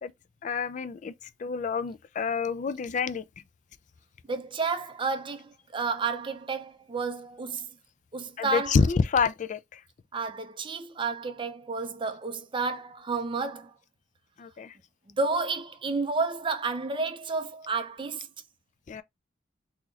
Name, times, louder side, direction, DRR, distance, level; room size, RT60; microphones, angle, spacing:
voice 1, 0.4-1.1 1.4-3.2 8.4-9.8 14.4-14.7 18.9-19.0, left 5 dB, 40° left, 0.3 m, -27 dB
voice 2, 4.3-7.7 8.1-8.8 10.1-13.7 15.1-18.3, right 4 dB, 25° right, 0.5 m, -31 dB
3.9 x 2.9 x 2.4 m
head